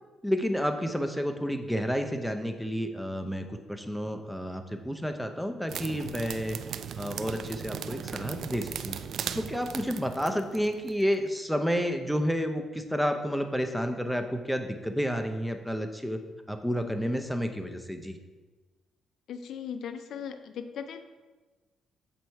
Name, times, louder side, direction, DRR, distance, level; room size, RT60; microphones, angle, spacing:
voice 1, 0.2-6.6 6.9-9.0 9.3-16.2 16.5-18.1, equal, ahead, 5 dB, 0.7 m, -30 dB
sound 1, 5.7-11.0, right 8 dB, 65° right, 0.3 m, -38 dB
voice 2, 19.3-21.0, left 7 dB, 70° left, 9 dB, 0.4 m, -38 dB
7.9 x 4.2 x 4.6 m, 1.3 s
cardioid pair, 90°, 0 cm